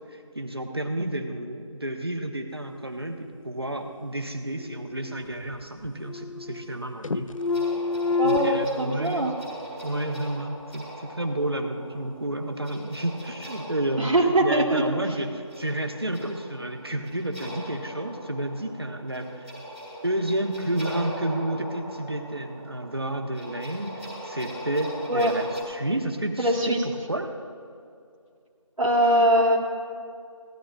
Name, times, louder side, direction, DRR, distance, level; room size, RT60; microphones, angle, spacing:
voice 1, 0.1-7.3 8.2-9.2 9.8-19.4 20.0-27.3, right 1 dB, 50° right, 3 dB, 1.1 m, -31 dB
sound 1, 4.6-5.5 5.8-6.8 7.0-8.7, left 4 dB, 75° left, 0.4 m, -28 dB
sound 2, 7.4-25.6, equal, 10° right, 2.1 m, -41 dB
voice 2, 8.2-9.3 14.0-14.8 25.1-25.3 26.4-26.8 28.8-29.6, right 1 dB, 85° right, -4 dB, 1.7 m, -22 dB
18.0 x 12.5 x 2.4 m, 2.4 s
figure-of-eight pair, 180°, 17 cm